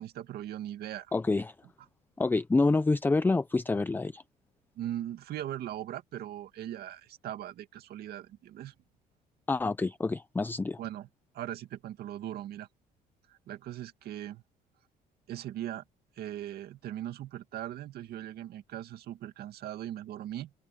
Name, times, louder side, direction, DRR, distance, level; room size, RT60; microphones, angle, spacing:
voice 1, 0.0-1.1 4.8-8.7 10.8-11.1 11.3-12.7 13.3-14.4 15.3-15.8 16.2-20.5, right 12 dB, 70° right, 2.2 m, -39 dB
voice 2, 1.1-1.5 2.2-4.2 9.5-10.8, left 3 dB, 10° left, 0.5 m, -27 dB
open air
cardioid pair, 110°, 17 cm